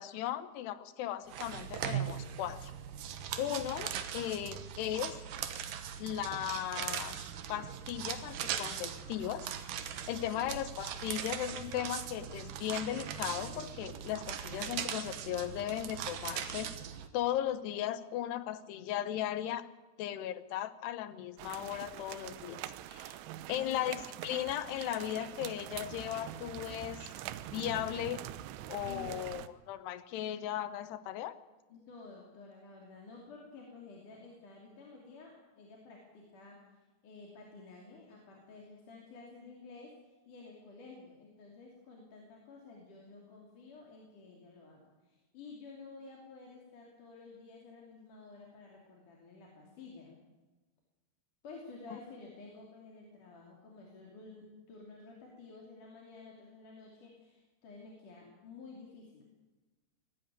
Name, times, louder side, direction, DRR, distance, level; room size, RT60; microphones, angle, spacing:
voice 1, 0.0-2.7 3.4-5.2 6.0-7.2 7.5-9.5 10.1-16.7 17.1-19.7 20.0-22.6 22.9-23.2 23.5-27.1 27.5-28.2 28.7-31.4, left 12 dB, 80° left, 14 dB, 2.9 m, -37 dB
sound 1, 1.3-17.1, right 9 dB, 65° right, 2.5 m, -40 dB
sound 2, 21.4-29.5, right 13 dB, 80° right, 2.9 m, -44 dB
voice 2, 23.5-23.9 28.8-29.3 31.7-36.8 37.0-39.9 40.3-50.2 51.4-59.2, left 4 dB, 50° left, -2 dB, 4.3 m, -52 dB
20.0 x 14.0 x 9.5 m, 1.2 s
omnidirectional pair, 4.8 m